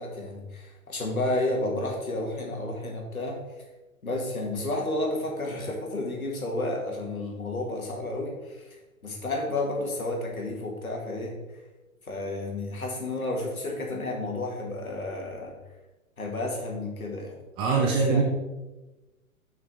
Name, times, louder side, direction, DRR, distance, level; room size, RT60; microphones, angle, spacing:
voice 1, 0.0-3.4 4.0-8.8 9.0-11.4 12.0-15.5 16.2-17.4 17.8-18.2, left 2 dB, 75° left, 0 dB, 2.3 m, -31 dB
voice 2, 17.6-18.2, right 4 dB, 15° right, 0 dB, 0.5 m, -22 dB
6.4 x 5.8 x 4.7 m, 1.1 s
figure-of-eight pair, 110°, 42 cm